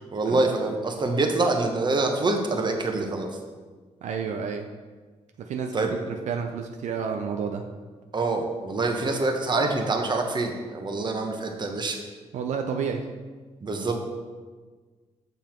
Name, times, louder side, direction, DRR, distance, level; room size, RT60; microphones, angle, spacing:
voice 1, 0.1-3.3 5.7-5.9 8.1-12.0 13.6-14.1, right 3 dB, 40° right, 4 dB, 1.1 m, -25 dB
voice 2, 4.0-4.6 5.5-7.6 12.3-13.0, right 6 dB, 80° right, 4 dB, 0.5 m, -30 dB
7.0 x 5.9 x 4.4 m, 1.4 s
cardioid pair, 90°, 12 cm